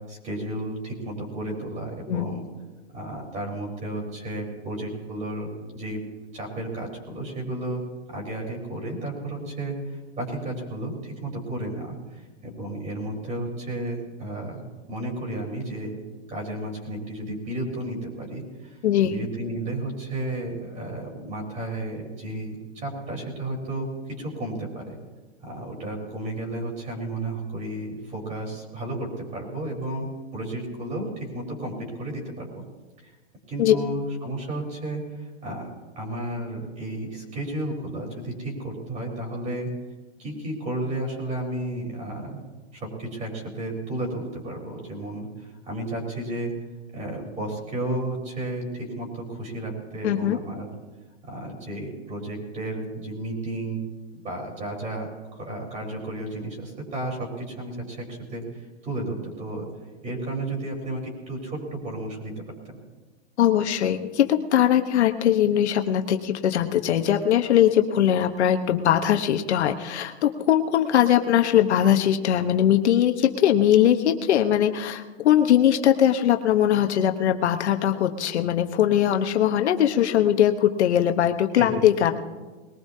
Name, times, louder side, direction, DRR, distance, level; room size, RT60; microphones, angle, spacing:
voice 1, 0.1-2.5 2.9-5.5 5.7-6.0 6.3-7.8 8.1-14.6 14.9-16.0 16.3-25.0 25.4-32.6 33.0-33.2 33.5-39.7 40.2-42.4 42.7-46.5 46.9-50.7 51.2-53.8 54.1-59.7 60.0-62.3 62.7-62.8 81.5-82.1, right 1 dB, 20° right, 1 dB, 4.2 m, -33 dB
voice 2, 50.0-50.4 63.4-82.1, left 10 dB, 80° left, 6 dB, 1.2 m, -21 dB
21.0 x 18.5 x 2.8 m, 1.3 s
hypercardioid pair, 145°, 33 cm